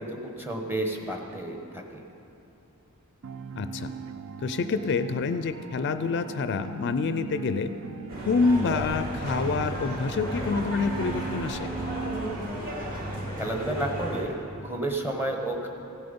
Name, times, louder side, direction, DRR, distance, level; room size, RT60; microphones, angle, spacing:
voice 1, 0.0-2.0 13.4-14.3 14.6-15.7, right 1 dB, 10° right, 2 dB, 1.0 m, -31 dB
sound 1, 3.2-12.4, right 6 dB, 65° right, 0.4 m, -40 dB
voice 2, 3.6-3.9 4.4-7.7 8.3-11.7, left 4 dB, 55° left, 10 dB, 0.4 m, -27 dB
sound 2, 8.1-14.2, equal, 40° right, 2.0 m, -33 dB
16.0 x 7.8 x 5.3 m, 3.0 s
head